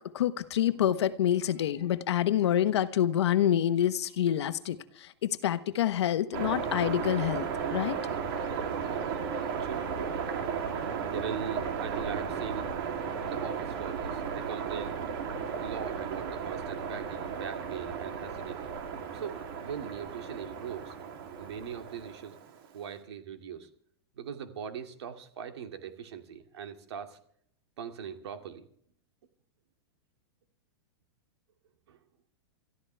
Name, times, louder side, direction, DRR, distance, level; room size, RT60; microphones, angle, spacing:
voice 1, 0.1-8.0, left 11 dB, 85° left, 1.1 m, -27 dB
sound 1, 6.3-22.7, right 6 dB, 55° right, 3.0 m, -35 dB
voice 2, 11.1-12.7 13.2-15.0 15.6-18.7 19.1-20.9 21.4-22.4 22.7-23.7 24.2-27.2 27.8-28.7 31.9-32.0, right 7 dB, 80° right, 2.4 m, -41 dB
26.5 x 14.0 x 3.4 m
supercardioid pair, 155°, 14 cm